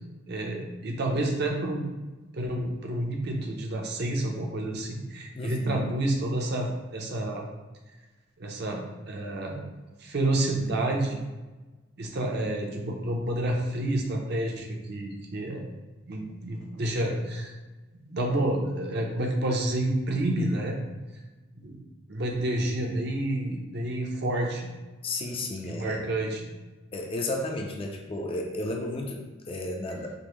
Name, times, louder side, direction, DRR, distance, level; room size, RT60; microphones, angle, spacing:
voice 1, 0.3-1.9 2.3-7.5 8.4-9.6 10.0-11.2 12.0-15.7 16.1-17.5 18.0-20.8 21.6-21.8 22.1-24.7 25.6-26.5, right 1 dB, 55° right, 0 dB, 0.6 m, -29 dB
voice 2, 5.3-5.8 25.0-26.1 26.9-30.1, left 2 dB, 30° left, 2 dB, 0.4 m, -33 dB
5.1 x 2.0 x 3.0 m, 1.2 s
head